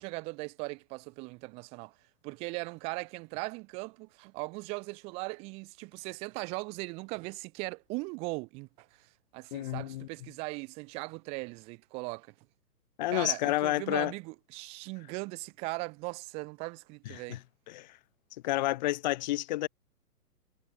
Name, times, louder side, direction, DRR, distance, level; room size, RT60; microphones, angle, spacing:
voice 1, 0.0-1.9 2.2-12.3 13.1-17.4, right 27 dB, 15° right, 0.6 m, -39 dB
voice 2, 9.5-10.1 13.0-14.1 17.1-17.4 17.7-17.9 18.4-19.7, left 17 dB, 30° left, 0.7 m, -30 dB
figure-of-eight pair, 125°, 47 cm